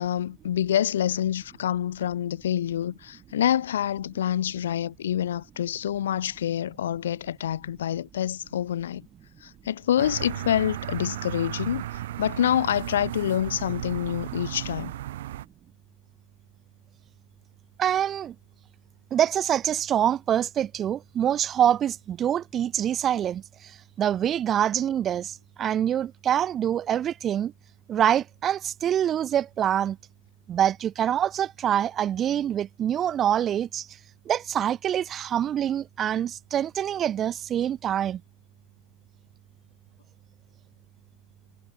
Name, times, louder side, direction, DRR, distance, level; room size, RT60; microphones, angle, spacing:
voice 1, 0.0-9.0 9.4-11.8 12.2-14.9, left 10 dB, 60° left, 0.8 m, -27 dB
sound 1, 10.0-15.5, right 14 dB, 55° right, 4.9 m, -35 dB
voice 2, 17.8-18.3 19.1-27.5 27.9-30.0 30.5-33.9 34.3-38.2, right 10 dB, 25° right, 2.6 m, -25 dB
figure-of-eight pair, 90°, 0 cm